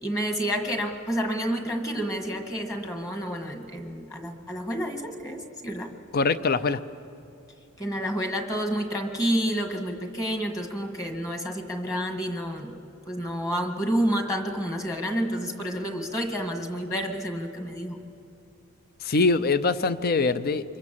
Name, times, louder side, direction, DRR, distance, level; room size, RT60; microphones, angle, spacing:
voice 1, 0.0-5.9 7.8-12.7 13.1-18.0, equal, 15° left, 5 dB, 1.8 m, -29 dB
voice 2, 6.1-6.8 19.0-20.8, left 3 dB, 45° left, 14 dB, 0.6 m, -23 dB
26.0 x 22.5 x 7.5 m, 2.6 s
head